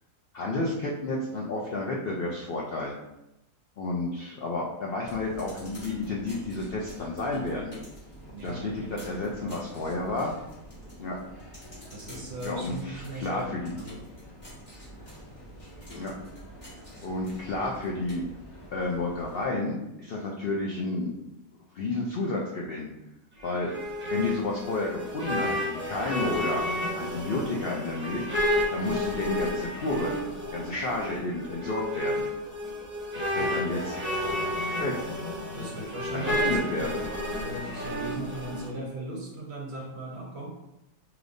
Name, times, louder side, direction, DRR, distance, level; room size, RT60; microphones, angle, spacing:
voice 1, 0.3-2.9 3.8-7.7 8.4-10.3 11.0-11.2 12.4-13.7 15.9-16.1 17.0-18.2 18.7-21.2 21.7-22.9 23.4-23.7 24.0-26.6 26.9-30.2 30.5-32.2 33.1-34.3 34.8-34.9 36.1-36.9, left 2 dB, 85° left, -2 dB, 0.5 m, -31 dB
sound 1, 5.0-19.5, equal, 30° left, 1.7 m, -46 dB
voice 2, 8.3-9.1 11.9-13.9 33.3-33.6 35.5-40.6, right 1 dB, 55° right, -1 dB, 0.9 m, -38 dB
sound 2, 23.4-38.7, left 1 dB, 10° right, 0.7 m, -31 dB
4.9 x 2.9 x 2.6 m, 0.89 s
omnidirectional pair, 1.7 m